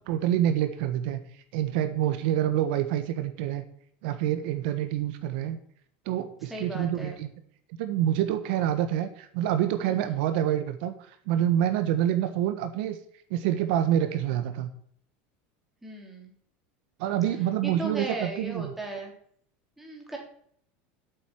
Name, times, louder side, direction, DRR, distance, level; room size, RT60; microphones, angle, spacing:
voice 1, 0.1-1.2 1.5-3.6 4.0-5.6 6.0-7.3 7.8-13.0 13.3-14.7 17.0-18.7, right 11 dB, 65° right, 9 dB, 1.4 m, -27 dB
voice 2, 6.5-7.1 9.8-10.1 15.8-16.3 17.6-19.1 19.8-20.2, right 2 dB, 5° right, -1 dB, 3.1 m, -37 dB
8.5 x 7.6 x 8.7 m, 0.63 s
supercardioid pair, 155°, 6 cm